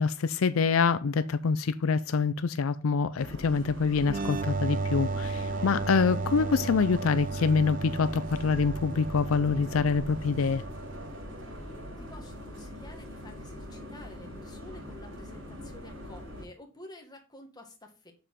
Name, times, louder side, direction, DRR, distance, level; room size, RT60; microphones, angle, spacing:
voice 1, 0.0-10.6, left 5 dB, 80° left, 0.5 m, -26 dB
sound 1, 3.2-16.4, equal, 80° right, 4.7 m, -42 dB
sound 2, 4.1-11.5, right 4 dB, 40° right, 0.5 m, -35 dB
voice 2, 11.4-11.7 12.0-18.1, left 1 dB, 20° left, 1.8 m, -50 dB
7.1 x 6.9 x 3.7 m
head